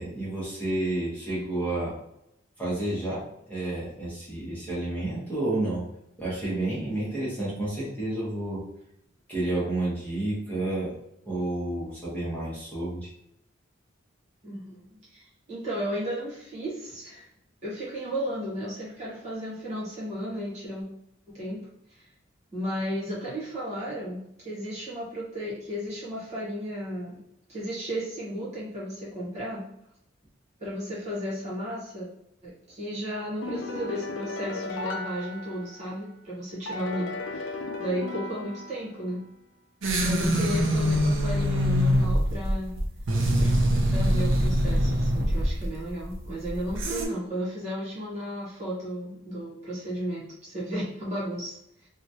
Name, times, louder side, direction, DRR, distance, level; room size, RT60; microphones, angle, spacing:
voice 1, 0.0-1.9 2.6-5.8 6.2-8.6 9.3-10.9 11.2-13.1, right 2 dB, 10° left, -9 dB, 1.2 m, -30 dB
voice 2, 14.4-17.3 17.6-20.9 21.3-21.6 21.9-22.0 22.5-27.2 27.5-29.6 30.6-32.1 32.4-39.2 40.0-42.7 43.4-43.5 43.9-51.9, equal, 35° right, -7 dB, 1.2 m, -34 dB
sound 1, 33.4-36.0 36.7-39.1, left 3 dB, 75° left, 0.4 m, -36 dB
sound 2, 39.8-47.1, equal, 90° right, 0.6 m, -24 dB
3.0 x 2.4 x 2.7 m, 0.78 s
head